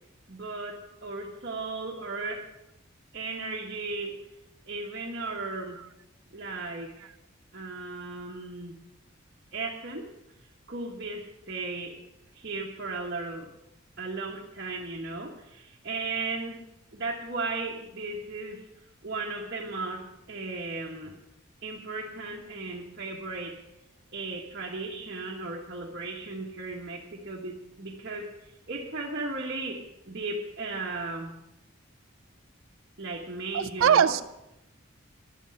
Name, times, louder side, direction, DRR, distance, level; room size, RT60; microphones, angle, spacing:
voice 1, 0.3-2.5 3.1-4.2 4.7-5.8 6.3-7.1 7.5-8.8 9.5-10.1 10.7-12.0 12.3-13.5 14.0-16.7 16.9-18.6 19.0-21.2 21.6-23.6 24.1-28.3 28.7-31.3 33.0-34.1, right 3 dB, 50° right, -4 dB, 1.6 m, -36 dB
voice 2, 33.5-34.2, right 8 dB, 70° right, 13 dB, 0.4 m, -21 dB
11.0 x 8.3 x 9.5 m, 0.88 s
head